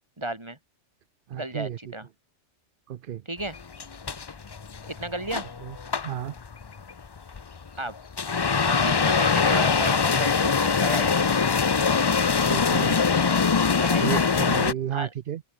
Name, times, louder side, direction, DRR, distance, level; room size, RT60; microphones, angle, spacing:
voice 1, 0.2-0.6 1.3-2.1 3.2-3.6 4.9-5.5 7.8-8.0 8.6-11.1 13.8-14.3 14.9-15.1, right 1 dB, 25° right, 3.0 m, -33 dB
voice 2, 1.3-1.8 2.9-3.2 5.6-5.7 6.0-6.3 12.4-13.0 14.0-15.4, right 10 dB, 55° right, 0.7 m, -32 dB
sound 1, 3.4-14.7, left 5 dB, 35° left, 0.4 m, -23 dB
open air
omnidirectional pair, 1.2 m